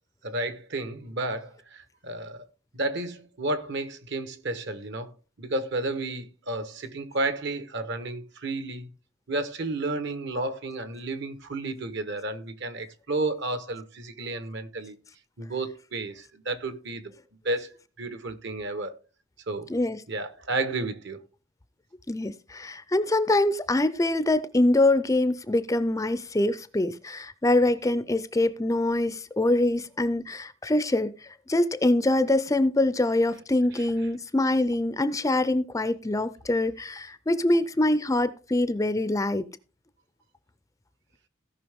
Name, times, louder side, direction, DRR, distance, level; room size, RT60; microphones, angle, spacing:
voice 1, 0.2-2.4 2.7-5.1 5.4-8.9 9.3-15.0 15.4-17.1 17.4-19.0 19.5-19.7 20.1-21.2 33.7-33.9, right 2 dB, 60° right, 1.2 m, -32 dB
voice 2, 19.7-20.0 22.1-39.5, left 2 dB, 15° left, 0.5 m, -24 dB
16.5 x 5.7 x 3.5 m
head